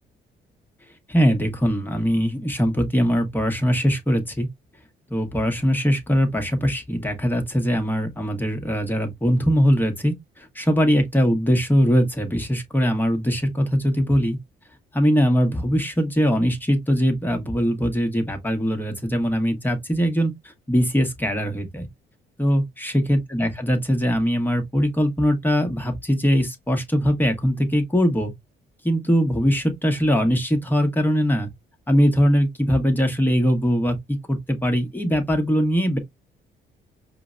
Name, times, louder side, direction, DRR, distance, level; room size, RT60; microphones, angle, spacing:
voice 1, 1.1-4.5 5.1-14.4 14.9-20.3 20.7-21.9 22.4-28.3 28.8-31.5 31.9-34.0 34.3-36.0, equal, 10° left, 1.0 m, -21 dB
4.9 x 2.1 x 2.5 m
cardioid pair, 90°, 20 cm